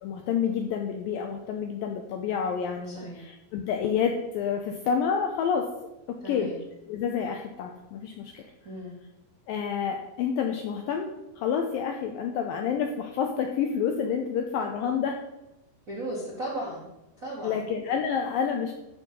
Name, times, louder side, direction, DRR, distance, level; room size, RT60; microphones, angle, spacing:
voice 1, 0.0-5.7 6.3-6.5 6.9-8.4 9.5-11.1 11.4-15.2 17.4-18.7, left 7 dB, 85° left, 3 dB, 2.1 m, -28 dB
voice 2, 6.2-6.6 8.6-8.9 15.9-16.9 17.2-17.6, right 1 dB, 55° right, -5 dB, 0.9 m, -35 dB
13.5 x 4.6 x 5.3 m, 0.94 s
omnidirectional pair, 4.9 m